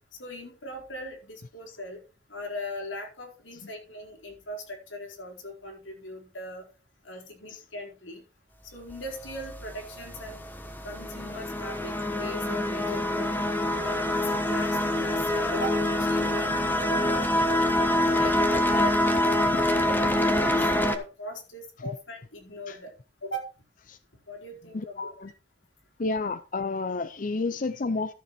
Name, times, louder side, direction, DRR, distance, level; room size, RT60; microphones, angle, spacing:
voice 1, 0.2-2.0 2.3-6.6 7.0-8.2 8.7-10.4 10.8-13.3 13.7-17.3 17.8-22.9 23.2-23.5 24.3-25.1, left 1 dB, 90° left, 4.4 m, -39 dB
sound 1, 8.9-21.0, left 1 dB, 10° left, 1.2 m, -25 dB
voice 2, 24.7-25.3 26.0-28.1, left 3 dB, 45° left, 0.5 m, -31 dB
13.0 x 7.1 x 4.4 m
head